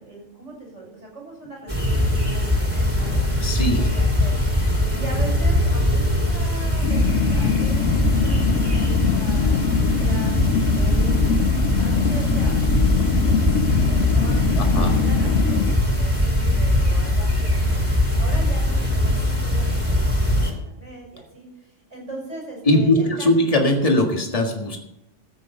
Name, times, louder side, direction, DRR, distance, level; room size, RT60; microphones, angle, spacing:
voice 1, 0.0-3.4 3.8-12.6 12.9-13.4 13.7-17.8 18.2-23.3, right 2 dB, 75° right, -1 dB, 6.7 m, -39 dB
sound 1, 1.7-20.5, left 1 dB, 10° right, 2.8 m, -21 dB
voice 2, 3.4-3.8 14.6-14.9 22.7-24.8, left 1 dB, 30° left, 2 dB, 1.8 m, -20 dB
sound 2, 6.8-15.8, left 7 dB, 80° left, 1.1 m, -23 dB
14.5 x 8.2 x 5.5 m, 0.85 s
omnidirectional pair, 1.3 m